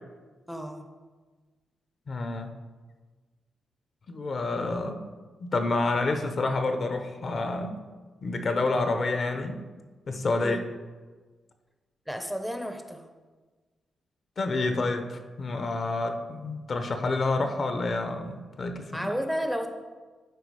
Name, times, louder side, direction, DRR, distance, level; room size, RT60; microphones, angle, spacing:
voice 1, 0.5-0.9 10.4-10.7 12.1-13.0 18.9-19.7, equal, ahead, 5 dB, 0.7 m, -32 dB
voice 2, 2.1-2.5 4.1-5.1 5.4-7.8 8.2-9.6 10.1-10.6 14.4-19.1, left 3 dB, 45° left, 7 dB, 0.9 m, -28 dB
11.5 x 4.6 x 4.8 m, 1.4 s
cardioid pair, 120°, 0 cm